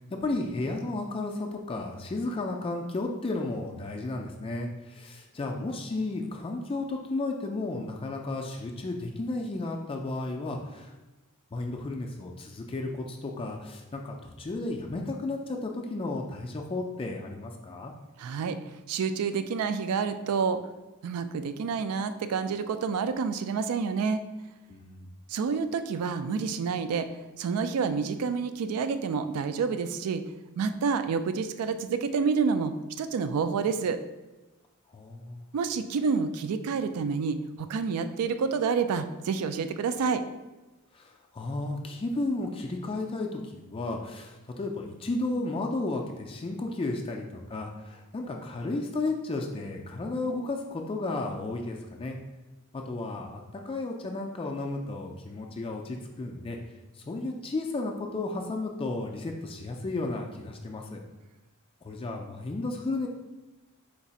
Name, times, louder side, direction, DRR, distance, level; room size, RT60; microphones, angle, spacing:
voice 1, 0.0-10.9 11.5-17.9 24.7-25.1 34.9-35.5 40.9-52.2 52.7-56.6 56.9-61.0 61.8-63.1, left 2 dB, 25° left, 2 dB, 0.3 m, -33 dB
voice 2, 18.2-18.6 18.9-20.6 21.0-24.2 25.3-27.1 27.4-30.2 30.6-34.0 35.5-40.2, right 5 dB, 75° right, 10 dB, 0.3 m, -28 dB
4.5 x 2.4 x 4.0 m, 1.1 s
head